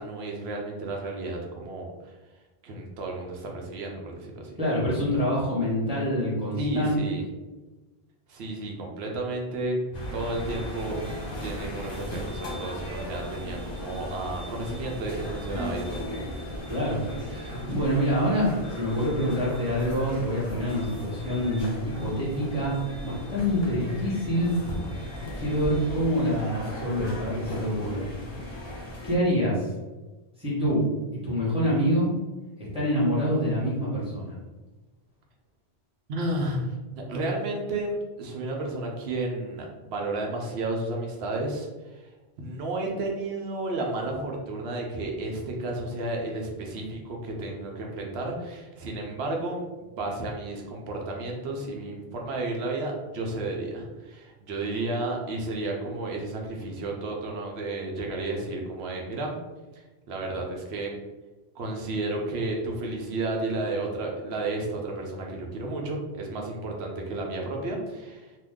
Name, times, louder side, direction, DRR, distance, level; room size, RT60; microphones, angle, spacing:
voice 1, 0.0-2.1 2.6-4.6 6.6-7.3 8.3-9.8 10.1-16.2 36.1-42.0 42.4-59.4 60.1-60.9 61.5-68.3, right 2 dB, 75° right, 0 dB, 0.9 m, -32 dB
voice 2, 4.6-6.9 16.7-17.0 17.3-24.6 25.4-28.1 29.0-29.7 30.4-32.1 32.7-34.4, equal, 5° right, -7 dB, 0.9 m, -26 dB
sound 1, 9.9-29.2, left 1 dB, 45° left, 0.7 m, -36 dB
2.7 x 2.2 x 3.5 m, 1.2 s
omnidirectional pair, 1.1 m